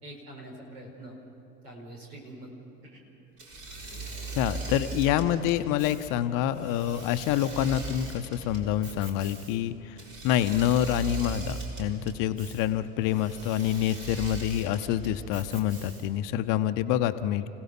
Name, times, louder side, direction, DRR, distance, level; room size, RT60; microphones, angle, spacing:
voice 1, 0.0-1.1 1.6-2.5 2.8-3.0, right 1 dB, 75° right, 1 dB, 5.0 m, -44 dB
Engine / Mechanisms, 3.4-16.3, right 3 dB, 40° right, 4.6 m, -39 dB
voice 2, 4.4-10.0 10.2-17.5, left 11 dB, 45° left, 11 dB, 0.8 m, -27 dB
29.5 x 17.0 x 6.0 m, 3.0 s
figure-of-eight pair, 75°, 47 cm